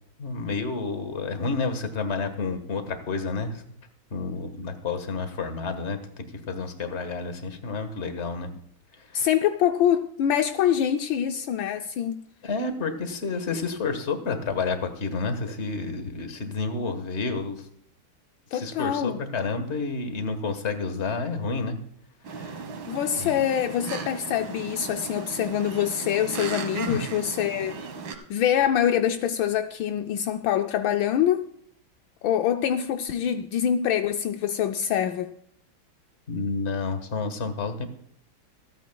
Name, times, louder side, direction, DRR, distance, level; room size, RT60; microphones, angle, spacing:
voice 1, 0.2-3.6 4.1-8.5 9.0-9.3 12.4-17.7 18.5-21.8 22.3-22.6 23.2-23.3 26.9-27.0 36.3-37.9, left 4 dB, 35° left, 1.5 m, -30 dB
voice 2, 9.1-12.2 18.5-19.2 22.9-27.8 28.3-31.5 32.2-35.3, left 10 dB, 75° left, 1.3 m, -25 dB
sound 1, 22.2-28.1, right 5 dB, 70° right, 2.0 m, -36 dB
26.5 x 9.2 x 2.3 m
omnidirectional pair, 2.2 m